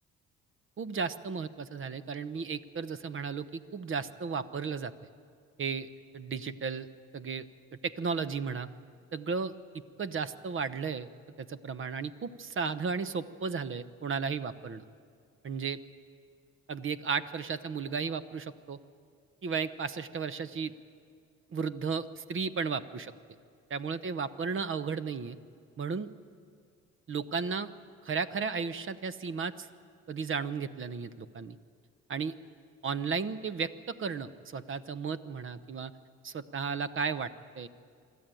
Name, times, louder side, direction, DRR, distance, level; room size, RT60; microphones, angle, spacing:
voice 1, 0.8-4.9 5.6-5.9 6.1-6.9 7.1-7.5 7.8-8.7 9.1-9.5 10.0-11.1 11.4-14.8 15.4-15.8 16.7-18.8 19.4-20.7 21.5-23.1 23.7-25.4 25.8-26.1 27.1-27.7 28.0-29.7 30.1-31.6 32.1-32.3 32.8-35.9 36.2-37.3 37.6-37.7, right 5 dB, 40° right, 13 dB, 0.9 m, -34 dB
25.0 x 13.0 x 9.1 m, 2.2 s
cardioid pair, 90°, 30 cm